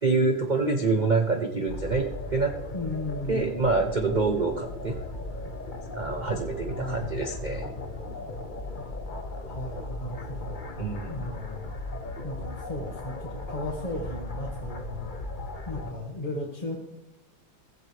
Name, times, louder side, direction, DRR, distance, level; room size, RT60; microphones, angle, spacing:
voice 1, 0.0-2.5 3.3-5.0 5.9-7.7 10.8-11.3, right 3 dB, 45° right, 4 dB, 0.5 m, -26 dB
sound 1, 1.7-15.9, left 2 dB, 35° left, 0.8 m, -37 dB
voice 2, 2.7-3.7 6.8-7.2 9.5-10.6 11.1-11.7 12.2-15.1 15.6-16.8, left 1 dB, 20° left, -3 dB, 1.7 m, -35 dB
16.5 x 15.5 x 3.4 m, 0.94 s
omnidirectional pair, 2.3 m